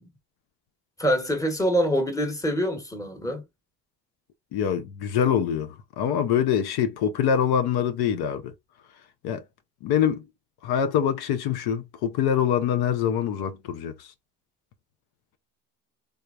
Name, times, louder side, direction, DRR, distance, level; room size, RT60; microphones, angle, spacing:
voice 1, 1.0-3.4, equal, 10° left, 1.2 m, -25 dB
voice 2, 4.5-8.5 9.2-9.4 9.8-10.2 10.6-14.1, left 8 dB, 70° left, 0.7 m, -24 dB
3.5 x 3.2 x 2.5 m
supercardioid pair, 85°, 40 cm